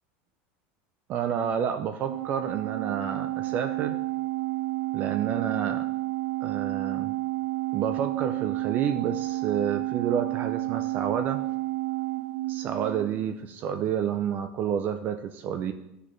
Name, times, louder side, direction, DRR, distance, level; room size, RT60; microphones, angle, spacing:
voice 1, 1.1-4.0 4.9-5.9 6.4-7.1 7.7-11.4 12.5-15.7, right 8 dB, 35° right, 7 dB, 0.4 m, -29 dB
Organ, 2.1-13.3, right 18 dB, 85° right, 0.6 m, -31 dB
12.0 x 4.1 x 3.1 m, 0.85 s
supercardioid pair, 160°, 5 cm